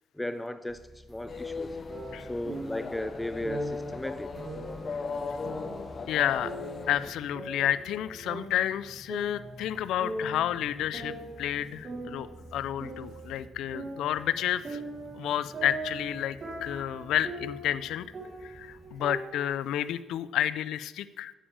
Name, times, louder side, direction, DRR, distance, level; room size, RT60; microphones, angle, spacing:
voice 1, 0.1-1.8 2.2-4.3, left 1 dB, 10° left, 11 dB, 0.5 m, -36 dB
sound 1, 0.7-19.1, right 1 dB, 15° right, 1.3 m, -52 dB
sound 2, 1.3-7.1, left 4 dB, 40° left, 0.7 m, -38 dB
sound 3, 1.9-2.9 3.4-3.9 4.4-6.0 6.4-8.0 8.2-9.7 10.0-10.5 10.9-13.4 13.7-17.8 18.1-19.5, right 1 dB, 45° right, 3.8 m, -40 dB
voice 2, 6.1-6.5 6.9-14.8 15.1-18.1 18.4-21.3, left 11 dB, 85° left, 16 dB, 0.4 m, -30 dB
9.9 x 7.2 x 7.1 m, 1.1 s
cardioid pair, 90°, 0 cm